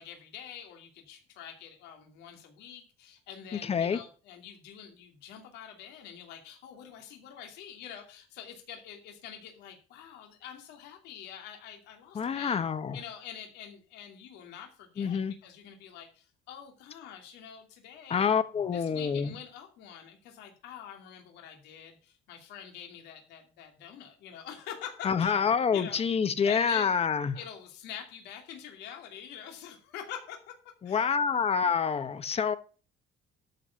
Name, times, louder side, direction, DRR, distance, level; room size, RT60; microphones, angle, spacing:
voice 1, 0.0-12.6 12.9-18.3 18.7-26.0 26.4-27.0 27.3-30.6 30.8-31.4, left 9 dB, 85° left, 3 dB, 2.6 m, -46 dB
voice 2, 3.6-4.0 12.1-13.0 15.0-15.3 18.1-19.3 25.0-27.4 30.8-32.6, left 6 dB, 35° left, 12 dB, 1.2 m, -27 dB
13.0 x 4.8 x 7.0 m, 0.37 s
cardioid pair, 110°, 17 cm